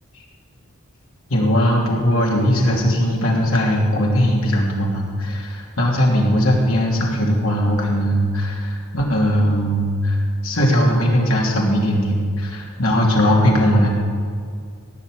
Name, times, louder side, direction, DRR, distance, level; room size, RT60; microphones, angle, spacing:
voice 1, 1.3-10.2 10.4-13.9, equal, 70° left, -2 dB, 3.1 m, -19 dB
17.0 x 6.0 x 9.2 m, 2.2 s
head